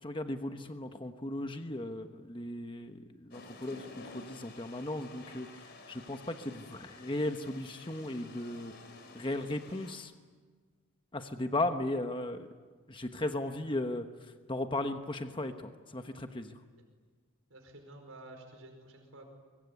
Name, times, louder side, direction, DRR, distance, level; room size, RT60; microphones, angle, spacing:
voice 1, 0.0-3.9 4.1-8.7 9.1-10.1 11.1-12.5 12.9-14.1 14.5-16.6, left 1 dB, 25° left, 7 dB, 1.2 m, -36 dB
sound 1, 3.3-9.9, left 3 dB, 50° left, 4.0 m, -51 dB
voice 2, 16.4-16.8 17.5-19.3, right 1 dB, 75° right, 4 dB, 5.0 m, -52 dB
24.0 x 23.5 x 9.8 m, 1.5 s
head